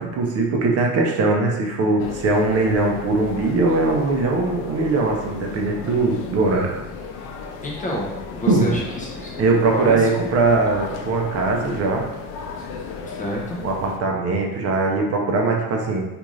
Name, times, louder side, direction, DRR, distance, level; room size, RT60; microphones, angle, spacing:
voice 1, 0.0-6.7 8.5-8.8 9.4-12.0 13.6-16.0, right 3 dB, 40° right, 0 dB, 0.5 m, -20 dB
sound 1, 2.0-14.0, left 5 dB, 90° left, 0.5 m, -35 dB
voice 2, 7.6-9.4 9.7-10.1 13.1-13.6, left 1 dB, 20° left, -3 dB, 0.4 m, -29 dB
2.5 x 2.4 x 3.0 m, 0.97 s
cardioid pair, 130°, 37 cm